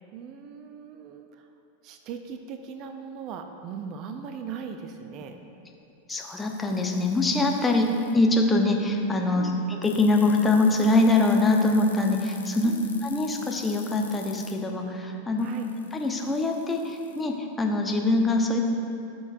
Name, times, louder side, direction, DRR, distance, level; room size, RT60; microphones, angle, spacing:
voice 1, 0.1-1.5 1.8-5.4 7.7-7.9 9.3-9.6 12.6-12.9 15.4-15.7, right 7 dB, 40° right, 6 dB, 0.5 m, -39 dB
sound 1, 6.1-8.1 9.8-14.5 15.4-17.2, left 3 dB, 80° left, 0.8 m, -44 dB
voice 2, 6.1-7.9 8.1-9.5 9.8-12.7 13.0-15.5 15.9-18.6, left 2 dB, 10° left, 1 dB, 0.9 m, -23 dB
15.5 x 6.3 x 2.6 m, 2.7 s
figure-of-eight pair, 90°, 0 cm